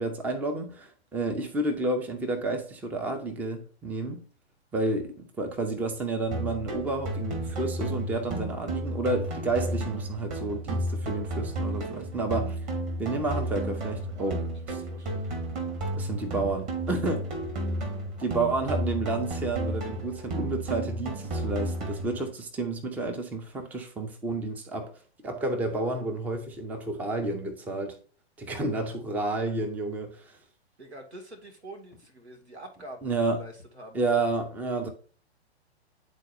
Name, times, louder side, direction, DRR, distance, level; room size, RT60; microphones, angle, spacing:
voice 1, 0.0-4.2 4.7-12.6 13.0-14.5 16.0-17.2 18.2-24.9 25.2-28.0 28.4-30.4 33.0-33.4 33.9-34.9, right 2 dB, 5° right, 0.5 m, -30 dB
sound 1, 6.3-22.3, right 1 dB, 25° right, 1.6 m, -32 dB
voice 2, 14.1-15.3 16.9-17.0 30.8-34.0, right 1 dB, 80° right, 2.1 m, -46 dB
9.8 x 4.0 x 2.6 m
figure-of-eight pair, 115°, 33 cm